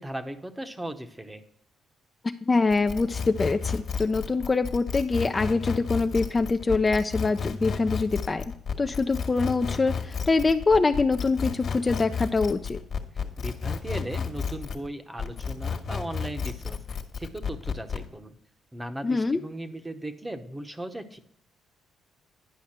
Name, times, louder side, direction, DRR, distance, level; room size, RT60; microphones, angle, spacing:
voice 1, 0.0-1.4 13.4-16.8 17.2-18.3 18.7-21.2, right 1 dB, 15° right, 9 dB, 0.9 m, -37 dB
voice 2, 2.4-8.4 8.8-12.8 19.0-19.4, left 3 dB, 25° left, 8 dB, 0.4 m, -24 dB
sound 1, 2.7-14.9 15.2-18.1, left 6 dB, 55° left, 1.5 m, -32 dB
10.0 x 5.7 x 4.3 m, 0.69 s
cardioid pair, 90°, 0 cm